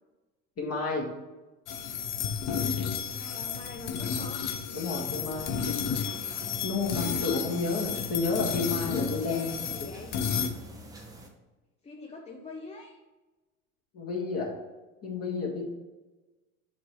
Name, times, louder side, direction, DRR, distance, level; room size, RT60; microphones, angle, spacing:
voice 1, 0.6-1.1 4.7-5.5 6.6-9.9 13.9-14.5 15.0-15.6, left 3 dB, 35° left, -1 dB, 1.9 m, -31 dB
sound 1, 1.7-10.5, left 7 dB, 50° left, 0.7 m, -32 dB
voice 2, 3.0-4.4 9.2-10.2 11.8-13.0, left 2 dB, 15° left, 0 dB, 0.6 m, -45 dB
sound 2, 5.1-11.3, right 1 dB, 10° right, 0.9 m, -47 dB
7.3 x 3.0 x 4.6 m, 1.1 s
hypercardioid pair, 95°, 42 cm